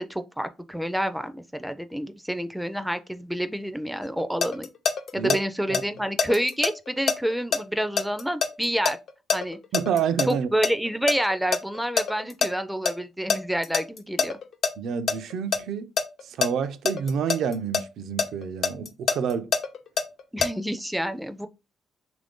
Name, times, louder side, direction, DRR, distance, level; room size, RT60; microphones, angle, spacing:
voice 1, 0.0-4.7 5.1-9.0 9.3-9.6 10.2-14.4 20.3-21.5, equal, 5° right, 0.3 m, -28 dB
sound 1, 4.0-5.4 5.7-10.3 10.6-12.5 12.8-12.9 13.3-14.7 15.1-15.6 16.0-17.8 18.2-20.5, left 6 dB, 60° left, 0.5 m, -25 dB
voice 2, 9.7-10.5 14.8-15.9 16.2-19.5, right 7 dB, 75° right, 0.4 m, -28 dB
3.0 x 2.5 x 3.5 m
cardioid pair, 90°, 0 cm